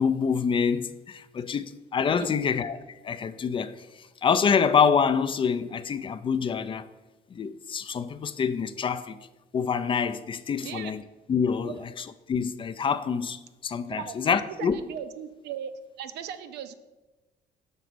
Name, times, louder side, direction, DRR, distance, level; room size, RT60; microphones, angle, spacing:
voice 1, 0.0-2.8 3.0-3.7 4.2-6.9 7.3-9.2 9.5-11.0 11.3-11.7 12.3-14.8, left 6 dB, 30° left, 0.4 m, -26 dB
voice 2, 10.6-10.9 11.6-11.7 13.9-15.7 16.0-16.7, right 9 dB, 80° right, 0.5 m, -37 dB
6.0 x 4.0 x 6.1 m
cardioid pair, 110°, 17 cm